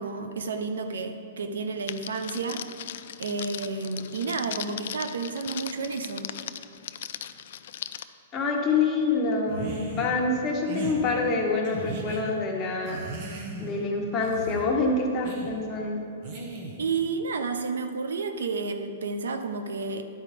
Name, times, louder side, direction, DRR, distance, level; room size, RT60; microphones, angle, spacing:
voice 1, 0.0-2.7 3.2-6.3 16.8-20.0, right 4 dB, 90° right, 7 dB, 0.6 m, -31 dB
Crackle, 1.9-8.0, left 10 dB, 65° left, 0.3 m, -38 dB
voice 2, 8.3-13.0 13.6-16.0, left 3 dB, 25° left, -1 dB, 1.2 m, -26 dB
sound 1, 9.5-10.1 10.6-11.0 11.6-12.2 12.8-13.8 14.2-14.6 15.2-15.5 16.2-16.9, right 2 dB, 45° right, 1.4 m, -37 dB
11.0 x 4.7 x 5.0 m, 2.4 s
hypercardioid pair, 140°, 0 cm